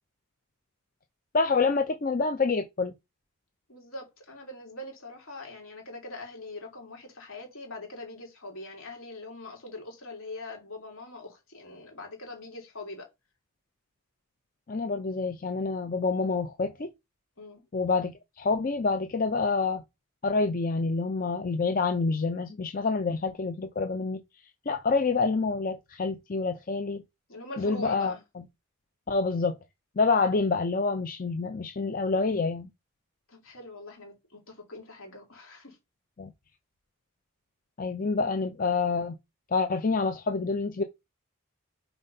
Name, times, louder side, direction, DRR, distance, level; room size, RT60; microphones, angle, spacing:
voice 1, 1.3-2.9 14.7-16.9 17.7-19.8 20.2-24.2 24.7-27.0 27.6-28.1 29.1-29.6 30.0-32.7 36.2-36.3 37.8-39.2 39.5-40.8, left 4 dB, 40° left, 0.5 m, -27 dB
voice 2, 3.7-13.1 17.4-17.6 27.3-28.2 33.3-35.8, left 2 dB, 70° left, 2.9 m, -42 dB
4.4 x 4.1 x 5.3 m
head